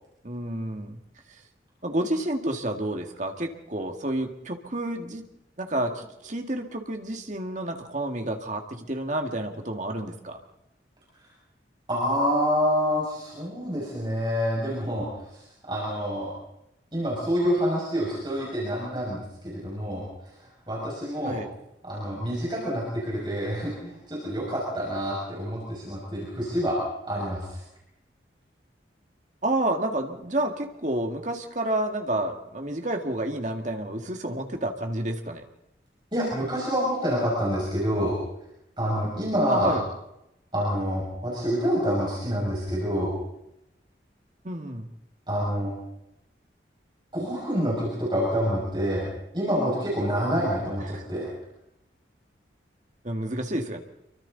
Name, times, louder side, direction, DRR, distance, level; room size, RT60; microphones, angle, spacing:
voice 1, 0.2-1.0 1.8-5.2 5.6-10.4 21.2-21.5 29.4-35.4 39.5-39.9 44.4-44.9 50.9-51.0 53.0-53.8, right 1 dB, 40° right, 4 dB, 2.1 m, -30 dB
voice 2, 11.9-16.3 16.9-20.0 20.7-21.4 21.8-26.8 27.1-27.6 36.1-38.2 38.8-39.7 40.5-43.1 45.3-45.7 47.1-49.1 49.3-51.3, equal, 25° right, -5 dB, 6.4 m, -27 dB
27.5 x 24.0 x 4.1 m, 0.84 s
head